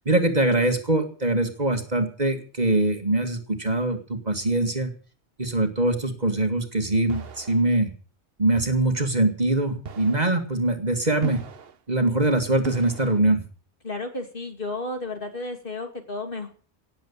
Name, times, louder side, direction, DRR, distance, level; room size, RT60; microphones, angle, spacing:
voice 1, 0.0-4.9 5.4-7.9 8.4-11.4 11.9-13.4, right 2 dB, 35° right, 6 dB, 2.2 m, -23 dB
sound 1, 7.1-7.6 8.6-8.9 9.9-10.4 11.2-11.8 12.7-13.2, right 5 dB, 60° right, 1.2 m, -37 dB
voice 2, 13.8-16.5, left 2 dB, 50° left, 5 dB, 2.8 m, -32 dB
18.5 x 7.9 x 8.4 m, 0.40 s
omnidirectional pair, 1.2 m